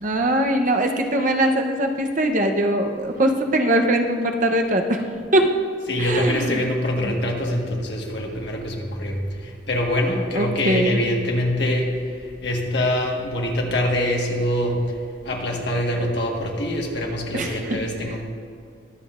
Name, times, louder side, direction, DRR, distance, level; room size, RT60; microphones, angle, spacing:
voice 1, 0.0-5.0 5.3-5.4 6.0-6.6 7.0-7.2 10.3-11.0 17.3-17.8, right 1 dB, 45° right, 4 dB, 0.8 m, -21 dB
voice 2, 5.9-15.0 15.2-18.2, left 1 dB, 65° left, 0 dB, 1.6 m, -24 dB
22.0 x 7.5 x 2.5 m, 2.3 s
head